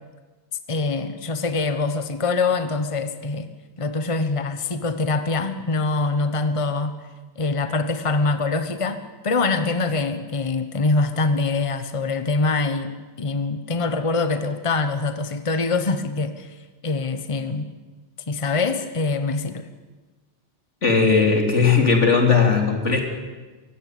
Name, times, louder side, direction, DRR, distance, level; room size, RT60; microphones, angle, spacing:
voice 1, 0.7-3.5 3.8-7.0 7.4-16.6 16.8-17.7 18.3-19.7, left 3 dB, 30° left, 9 dB, 1.2 m, -24 dB
voice 2, 20.8-23.0, left 5 dB, 90° left, 3 dB, 3.7 m, -17 dB
23.5 x 16.5 x 9.4 m, 1.3 s
omnidirectional pair, 1.2 m